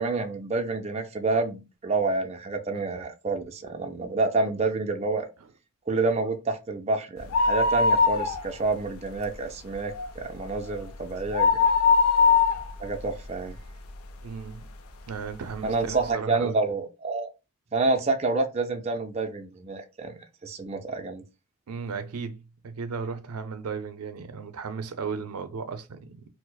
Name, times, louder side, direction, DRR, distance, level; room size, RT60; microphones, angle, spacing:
voice 1, 0.0-5.3 5.9-11.6 12.8-13.6 15.6-17.3 17.7-20.1 20.4-21.2, right 3 dB, 30° right, 0.4 m, -28 dB
sound 1, 7.2-8.8 9.2-9.3 9.7-14.1 14.6-14.7 15.5-15.6 15.8-15.9, left 5 dB, 75° left, 0.5 m, -22 dB
voice 2, 14.2-14.7 15.1-16.6 21.7-26.3, right 5 dB, 85° right, 0.5 m, -35 dB
4.5 x 2.0 x 2.2 m
head